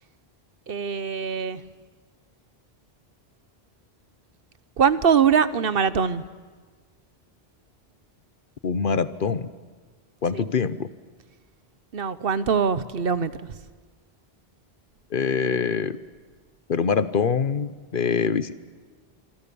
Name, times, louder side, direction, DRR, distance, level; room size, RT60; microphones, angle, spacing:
voice 1, 0.7-1.6 4.8-6.2 10.3-10.5 11.9-13.5, right 7 dB, 65° right, 14 dB, 1.1 m, -22 dB
voice 2, 8.6-9.5 10.2-10.9 15.1-16.0 16.7-18.5, left 6 dB, 60° left, 14 dB, 1.0 m, -24 dB
27.0 x 25.0 x 6.9 m, 1.5 s
omnidirectional pair, 1.0 m